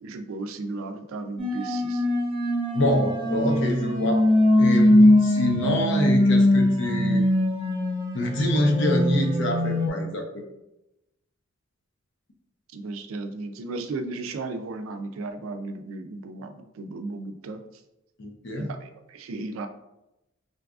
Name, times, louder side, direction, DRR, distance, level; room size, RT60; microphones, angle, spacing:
voice 1, 0.0-2.0 12.7-17.6 18.6-19.7, right 3 dB, 80° right, 7 dB, 0.4 m, -35 dB
sound 1, 1.4-9.9, left 1 dB, 25° right, 0.7 m, -21 dB
voice 2, 2.7-4.3 4.6-7.2 8.1-10.4 18.2-18.7, left 1 dB, 65° left, 2 dB, 0.6 m, -25 dB
3.9 x 2.3 x 2.4 m, 0.90 s
head